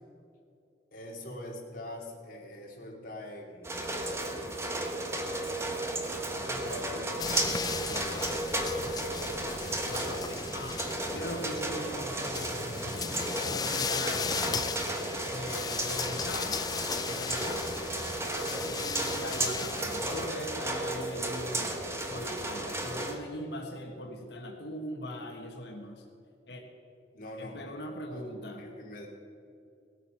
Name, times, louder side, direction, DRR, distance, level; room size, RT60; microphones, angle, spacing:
voice 1, 0.9-4.0 5.2-5.9 6.3-8.7 9.6-10.0 27.1-27.7 28.1-28.2 28.6-29.1, left 1 dB, 50° left, -1 dB, 2.5 m, -44 dB
sound 1, 3.6-23.1, right 1 dB, 15° right, 1.2 m, -34 dB
sound 2, 7.2-20.3, left 6 dB, 20° left, 0.3 m, -36 dB
voice 2, 8.6-8.9 9.9-10.8 11.1-12.4 12.8-14.3 15.3-16.6 17.1-17.7 18.5-21.8 22.1-26.0 26.5-26.6 27.4-28.6, left 1 dB, 70° left, 2 dB, 1.4 m, -40 dB
18.5 x 9.1 x 5.8 m, 2.6 s
head